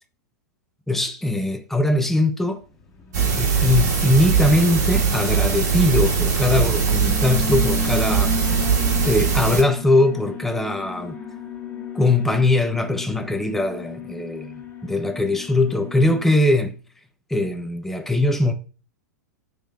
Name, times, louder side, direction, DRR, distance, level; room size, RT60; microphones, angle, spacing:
voice 1, 0.9-2.6 3.4-8.3 9.0-11.2 11.9-16.7 17.3-18.5, left 2 dB, 5° left, 0.5 m, -21 dB
Alarm, 2.9-16.4, left 4 dB, 25° left, 0.9 m, -34 dB
sound 1, 3.1-9.6, right 6 dB, 65° right, 1.7 m, -21 dB
3.7 x 3.0 x 4.4 m
figure-of-eight pair, 100°, 10 cm